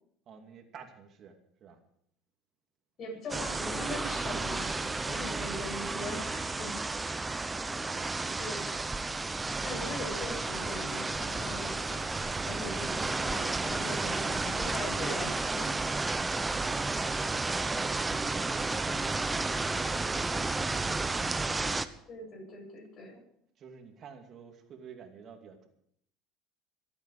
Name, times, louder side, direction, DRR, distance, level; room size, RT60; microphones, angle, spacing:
voice 1, 0.3-1.8 7.7-9.4 16.5-21.0 23.6-25.7, right 6 dB, 45° right, 5 dB, 2.5 m, -51 dB
voice 2, 3.0-6.8 8.2-8.6 9.6-12.1 12.5-16.0 22.1-23.2, left 2 dB, 45° left, 0 dB, 7.6 m, -41 dB
sound 1, 3.3-21.8, right 3 dB, 15° right, 0.8 m, -32 dB
25.5 x 8.9 x 4.9 m, 0.68 s
supercardioid pair, 110°, 0 cm